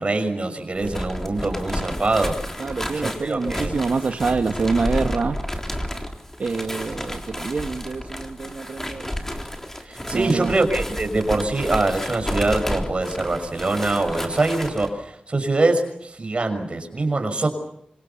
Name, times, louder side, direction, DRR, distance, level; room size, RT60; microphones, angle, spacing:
voice 1, 0.0-2.4 2.9-3.7 9.8-17.5, right 2 dB, 40° right, 6 dB, 6.2 m, -23 dB
sound 1, 0.7-14.9, left 1 dB, 15° left, 3.6 m, -31 dB
voice 2, 2.6-5.4 6.4-9.1 10.1-10.5, right 4 dB, 70° right, 5 dB, 1.4 m, -26 dB
27.0 x 26.0 x 7.1 m, 0.74 s
wide cardioid pair, 110°, 3 cm